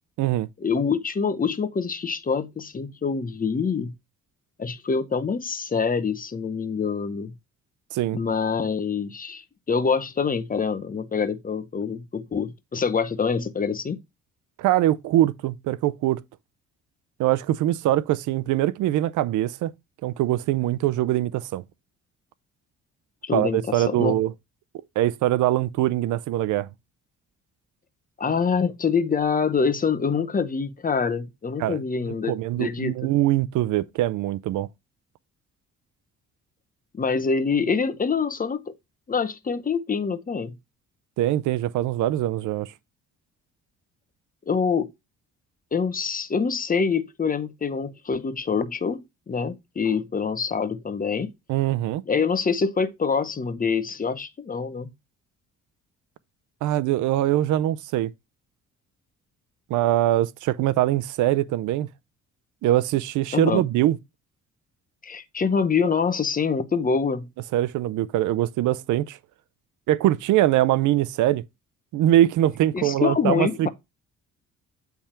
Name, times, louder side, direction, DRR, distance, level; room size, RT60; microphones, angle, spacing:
voice 1, 0.6-3.9 4.6-7.3 8.1-14.0 23.2-24.2 28.2-33.1 36.9-38.7 39.1-40.5 44.5-44.9 45.7-51.3 52.1-54.9 63.3-63.6 65.0-67.3 72.7-73.7, left 5 dB, 30° left, 0.8 m, -25 dB
voice 2, 14.6-16.2 17.2-19.7 20.0-21.6 23.3-24.3 25.0-26.7 31.6-31.8 32.3-34.7 41.2-42.7 51.5-52.0 56.6-58.1 59.7-61.9 62.6-64.0 67.5-69.2 69.9-71.4 71.9-73.7, right 14 dB, 80° right, 0.5 m, -22 dB
8.7 x 3.5 x 4.3 m
cardioid pair, 90°, 30 cm